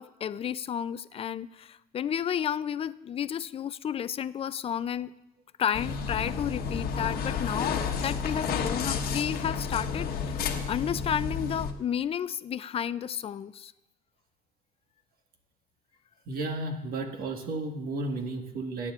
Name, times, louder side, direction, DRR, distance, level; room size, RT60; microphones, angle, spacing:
voice 1, 0.0-5.1 5.6-10.4 10.7-13.7, left 9 dB, 35° left, 16 dB, 0.4 m, -32 dB
sound 1, 5.7-11.7, left 6 dB, 65° left, 1.2 m, -31 dB
voice 2, 16.3-18.9, right 2 dB, 60° right, 4 dB, 1.5 m, -33 dB
20.5 x 9.8 x 2.4 m, 0.96 s
cardioid pair, 110°, 17 cm